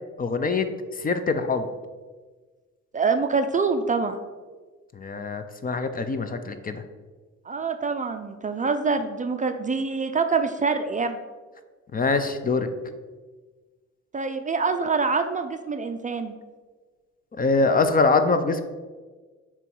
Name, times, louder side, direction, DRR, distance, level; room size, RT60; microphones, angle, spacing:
voice 1, 0.2-0.7 1.0-1.7 5.0-6.8 11.9-12.7 17.4-18.6, left 3 dB, 30° left, 9 dB, 0.5 m, -23 dB
voice 2, 2.9-4.2 7.5-11.2 14.1-16.3, right 4 dB, 25° right, 7 dB, 0.4 m, -25 dB
7.0 x 3.1 x 4.5 m, 1.4 s
cardioid pair, 90°, 30 cm